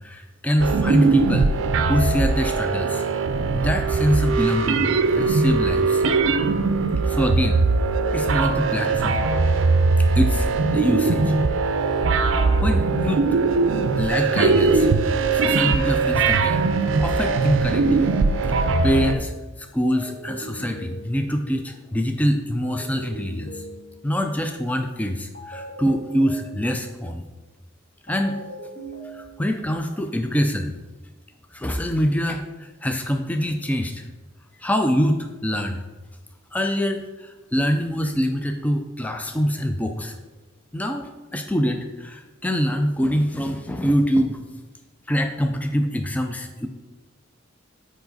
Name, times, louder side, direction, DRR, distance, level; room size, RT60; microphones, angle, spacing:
voice 1, 0.0-1.5 1.9-3.1 3.5-6.0 7.0-7.6 8.1-9.3 10.0-11.4 12.6-13.3 14.0-14.9 15.3-16.6 17.0-18.1 18.5-19.3 19.6-23.7 24.0-27.2 28.1-28.4 29.1-30.8 31.5-34.1 34.6-35.8 36.5-40.1 40.7-44.4 45.1-46.7, equal, 10° left, 5 dB, 0.4 m, -24 dB
sound 1, 0.6-19.2, right 4 dB, 75° right, 0.5 m, -20 dB
sound 2, 11.7-13.4 14.4-16.1 17.2-18.9 19.9-21.6 22.6-24.3 25.3-27.0 28.1-29.4, right 1 dB, 45° left, 1.8 m, -40 dB
7.1 x 5.0 x 3.9 m, 1.2 s
head